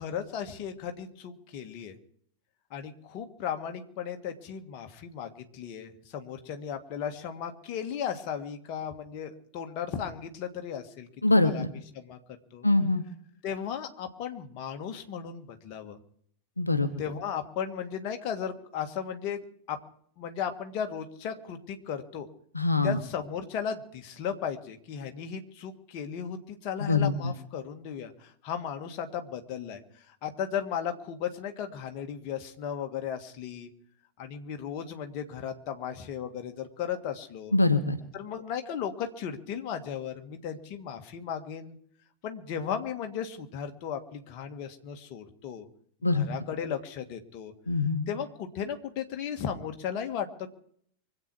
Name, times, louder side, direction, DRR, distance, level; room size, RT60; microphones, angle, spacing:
voice 1, 0.0-1.9 2.7-12.2 12.5-12.7 13.4-16.0 17.0-19.8 20.2-22.3 22.8-33.7 34.2-37.5 38.1-41.8 42.2-45.7 46.1-47.5 48.1-50.5, left 8 dB, 45° left, 5 dB, 1.7 m, -36 dB
voice 2, 11.2-11.7 12.6-13.0 16.6-16.9 22.6-22.9 26.9-27.1 37.5-38.0 46.0-46.3 47.7-48.1, left 3 dB, 85° left, 8 dB, 1.0 m, -23 dB
24.5 x 8.2 x 6.2 m, 0.63 s
figure-of-eight pair, 90°, 0 cm